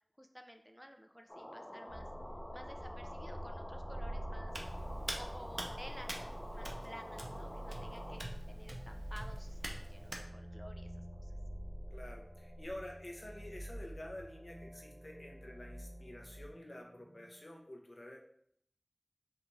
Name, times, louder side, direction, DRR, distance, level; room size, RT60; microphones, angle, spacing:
voice 1, 0.2-2.1 2.5-4.5 5.2-6.1 6.5-11.3, equal, ahead, 4 dB, 0.5 m, -53 dB
sound 1, 1.3-8.2, left 1 dB, 40° left, 0.8 m, -48 dB
sound 2, 1.9-17.5, equal, 85° right, 1.3 m, -46 dB
Hands, 4.5-10.2, right 1 dB, 45° right, 0.7 m, -46 dB
voice 2, 11.9-18.2, left 1 dB, 75° left, 0 dB, 0.8 m, -49 dB
5.4 x 2.4 x 3.2 m, 0.68 s
wide cardioid pair, 40°, 0 cm